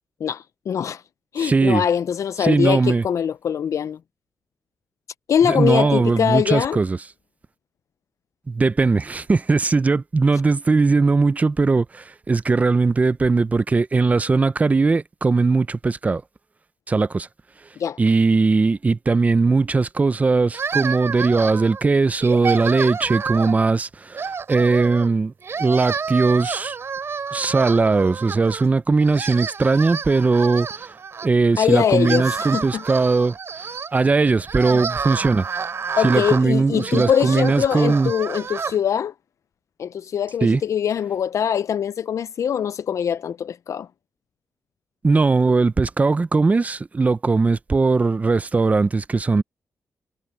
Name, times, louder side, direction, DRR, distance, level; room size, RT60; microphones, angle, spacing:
voice 1, 0.2-1.0 1.3-4.0 5.3-6.8 17.8-18.0 31.6-32.8 34.7-34.8 36.0-39.1 39.8-43.9, left 8 dB, 60° left, 0.4 m, -22 dB
voice 2, 1.4-1.8 2.4-3.0 5.4-7.0 8.5-16.2 16.9-17.3 18.0-25.3 25.6-26.8 27.3-30.9 31.2-33.4 33.9-35.5 36.0-38.1 40.4-40.6 45.0-49.4, right 3 dB, 25° right, 0.6 m, -19 dB
sound 1, 20.5-21.8 22.2-23.7 24.1-25.1 25.4-28.7 29.0-31.3 31.8-38.8, right 5 dB, 45° right, 3.8 m, -29 dB
wide cardioid pair, 120°, 6 cm